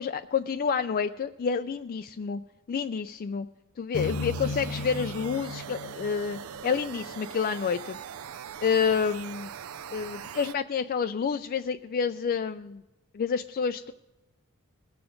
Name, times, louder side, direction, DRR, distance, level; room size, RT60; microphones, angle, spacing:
voice 1, 0.0-2.4 2.7-3.5 3.8-8.0 8.6-9.5 9.9-12.8 13.1-13.9, left 6 dB, 45° left, 9 dB, 0.3 m, -29 dB
sound 1, 3.9-7.2, left 3 dB, 75° left, 0.8 m, -36 dB
sound 2, 3.9-10.5, right 8 dB, 70° right, 0.4 m, -41 dB
20.0 x 6.9 x 5.1 m, 1.0 s
head